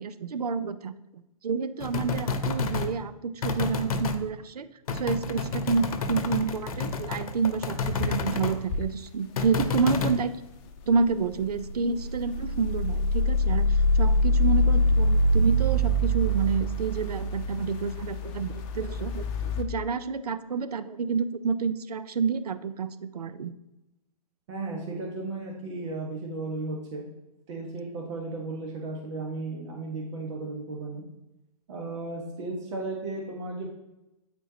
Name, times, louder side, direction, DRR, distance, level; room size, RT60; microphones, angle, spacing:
voice 1, 0.0-4.7 4.9-10.3 10.9-23.5, right 5 dB, 85° right, 13 dB, 0.5 m, -29 dB
sound 1, 1.8-2.9 3.4-4.2 4.9-8.6 9.4-10.2, left 4 dB, 70° left, 0.8 m, -30 dB
sound 2, 5.7-5.9 6.2-6.9 7.2-7.3 7.8-8.8 11.0-19.6, left 1 dB, 35° left, 0.7 m, -25 dB
voice 2, 24.5-27.1 27.5-31.0 31.7-33.7, right 3 dB, 55° right, -1 dB, 1.3 m, -35 dB
9.0 x 4.4 x 2.8 m, 0.96 s
hypercardioid pair, 125°, 19 cm